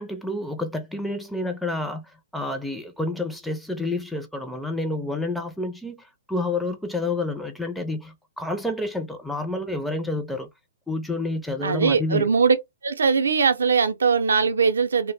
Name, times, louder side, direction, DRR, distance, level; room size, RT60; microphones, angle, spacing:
voice 1, 0.0-10.5 10.9-12.3, left 2 dB, ahead, 0.4 m, -29 dB
voice 2, 11.6-12.6 12.8-15.1, right 5 dB, 85° right, 0.5 m, -20 dB
2.0 x 2.0 x 3.3 m
hypercardioid pair, 140°, 0 cm